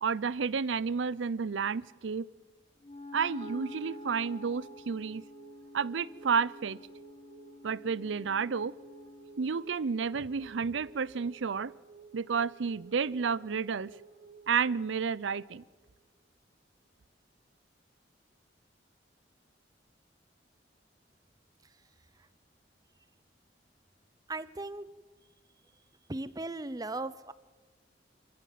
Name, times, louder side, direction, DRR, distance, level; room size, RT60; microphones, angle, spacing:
voice 1, 0.0-2.3 3.1-5.2 5.7-6.8 7.6-8.7 9.4-11.7 12.1-13.9 14.5-15.6, right 6 dB, 85° right, 0.5 m, -31 dB
Wind instrument woodwind instrument, 2.8-9.5, left 3 dB, 35° left, 1.2 m, -49 dB
sound 1, 3.4-15.9, right 6 dB, 65° right, 1.6 m, -53 dB
voice 2, 24.3-24.9 26.1-27.3, right 2 dB, 20° right, 0.7 m, -37 dB
26.0 x 15.0 x 7.5 m
head